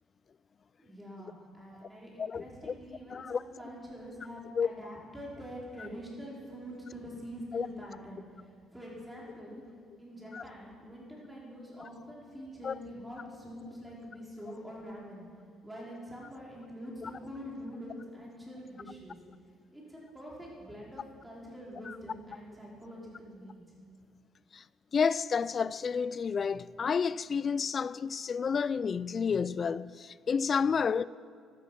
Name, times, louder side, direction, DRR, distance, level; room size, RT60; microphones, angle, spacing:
voice 1, 0.8-9.6 10.0-15.3 15.6-19.2 19.7-23.6, equal, 10° right, 4.9 m, -45 dB
voice 2, 2.2-2.7 3.1-3.4 4.6-4.7 7.5-7.7 10.3-10.4 12.6-12.7 17.0-17.1 21.9-22.0 24.5-24.6 24.9-31.0, left 6 dB, 40° left, 0.3 m, -30 dB
13.5 x 13.0 x 6.0 m
cardioid pair, 100°, 0 cm